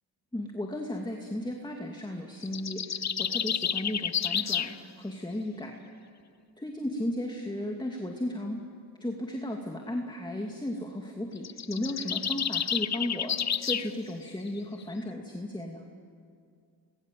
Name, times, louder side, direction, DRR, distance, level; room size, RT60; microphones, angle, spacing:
voice 1, 0.3-5.7 6.6-8.7 9.0-15.9, left 1 dB, 10° left, 2 dB, 2.6 m, -35 dB
sound 1, 2.4-4.7 11.4-13.9, left 8 dB, 35° left, 0.8 m, -30 dB
25.0 x 21.5 x 7.8 m, 2.2 s
supercardioid pair, 65°, 49 cm